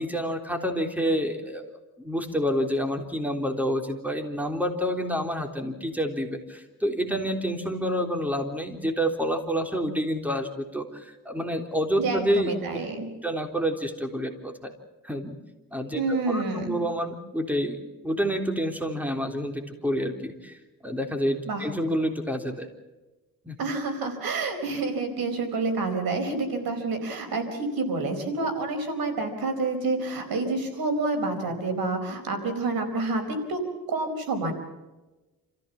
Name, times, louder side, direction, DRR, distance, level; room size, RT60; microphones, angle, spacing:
voice 1, 0.0-12.5 13.2-14.7 15.0-15.4 15.7-16.0 16.3-17.8 18.0-20.6 20.8-22.7 23.5-23.6, equal, 5° right, 4 dB, 3.6 m, -28 dB
voice 2, 12.0-13.1 15.9-16.8 21.5-21.6 23.6-33.6 33.9-34.5, right 3 dB, 85° right, 5 dB, 4.5 m, -28 dB
28.5 x 15.0 x 7.2 m, 1.1 s
cardioid pair, 75°, 34 cm